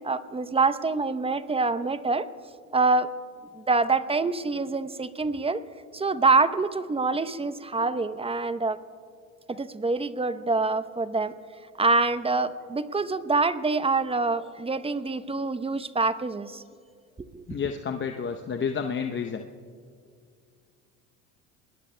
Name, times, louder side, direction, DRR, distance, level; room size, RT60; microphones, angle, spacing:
voice 1, 0.0-2.3 2.7-3.1 3.5-5.6 5.9-8.8 9.5-11.3 11.8-16.6 17.3-17.4, right 3 dB, 15° right, 13 dB, 0.7 m, -25 dB
voice 2, 17.5-19.4, left 6 dB, 30° left, 5 dB, 0.8 m, -30 dB
29.5 x 20.5 x 2.2 m, 2.3 s
hypercardioid pair, 75°, 38 cm